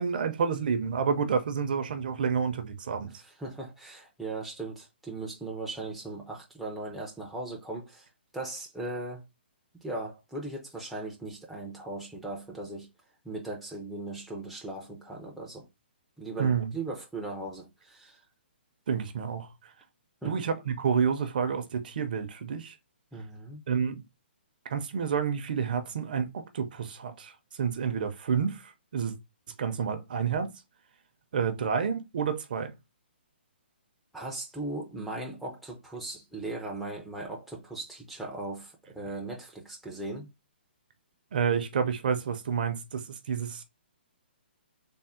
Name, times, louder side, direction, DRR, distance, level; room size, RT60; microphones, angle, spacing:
voice 1, 0.0-3.1 16.4-16.7 18.9-19.5 20.2-22.7 23.7-24.0 24.7-27.3 27.6-29.1 29.6-30.5 31.3-32.7 41.3-43.6, right 6 dB, 50° right, 0.6 m, -29 dB
voice 2, 3.0-8.1 8.3-9.2 9.7-12.9 13.2-15.7 16.2-18.2 20.2-20.4 23.1-23.6 34.1-40.3, right 2 dB, ahead, 0.4 m, -38 dB
3.5 x 2.0 x 4.2 m
hypercardioid pair, 165°, 6 cm